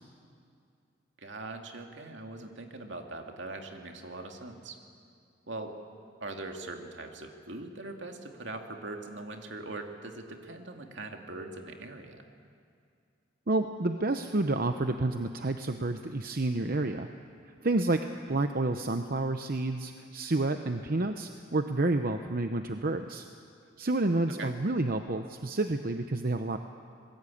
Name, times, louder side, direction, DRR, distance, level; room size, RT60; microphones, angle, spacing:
voice 1, 1.2-4.8 5.5-5.7 6.2-12.2 24.4-24.5, right 2 dB, 70° right, 3 dB, 2.5 m, -41 dB
voice 2, 13.5-17.1 17.6-23.2 23.8-26.6, right 2 dB, 50° right, 7 dB, 0.8 m, -29 dB
27.0 x 21.5 x 8.6 m, 2.4 s
head